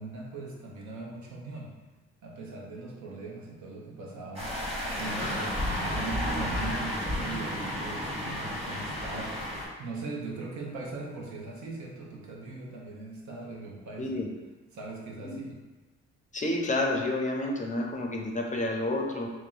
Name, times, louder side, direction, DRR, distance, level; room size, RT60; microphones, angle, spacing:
voice 1, 0.0-1.7 2.2-4.5 5.0-14.2 14.7-15.6, right 3 dB, 70° right, -2 dB, 1.0 m, -40 dB
sound 1, 4.4-9.7, left 1 dB, 20° right, 1.2 m, -32 dB
voice 2, 16.3-19.3, left 2 dB, 25° left, 1 dB, 0.6 m, -29 dB
3.1 x 2.9 x 3.8 m, 1.2 s
cardioid pair, 90°, 30 cm